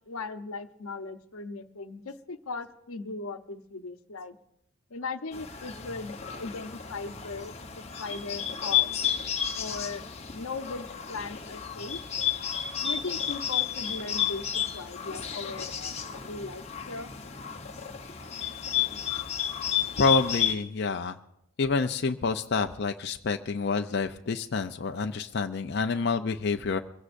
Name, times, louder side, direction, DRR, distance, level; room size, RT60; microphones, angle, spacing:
voice 1, 0.1-4.4 4.9-8.9 9.5-10.0 10.3-12.0 12.8-17.1, left 3 dB, 90° left, 9 dB, 0.9 m, -38 dB
Bird, 5.3-20.5, left 10 dB, 30° left, 1.1 m, -32 dB
voice 2, 20.0-21.2 21.6-26.8, left 4 dB, 55° left, 5 dB, 0.5 m, -28 dB
23.5 x 16.0 x 2.6 m, 0.79 s
head